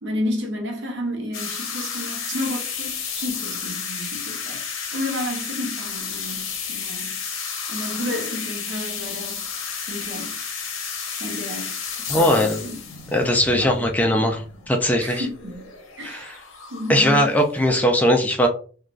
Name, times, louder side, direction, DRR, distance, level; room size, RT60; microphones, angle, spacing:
voice 1, 0.0-7.3 7.7-9.5 9.9-10.4 11.2-12.8 13.5-14.3 15.0-16.4 16.7-17.3, left 1 dB, 60° right, 0.7 m, -31 dB
sound 1, 1.3-17.8, left 6 dB, 75° left, 0.7 m, -32 dB
voice 2, 12.1-12.6 13.1-14.4 14.7-15.2 16.0-16.3 16.9-18.5, equal, 10° left, 0.4 m, -19 dB
3.3 x 2.3 x 2.4 m
head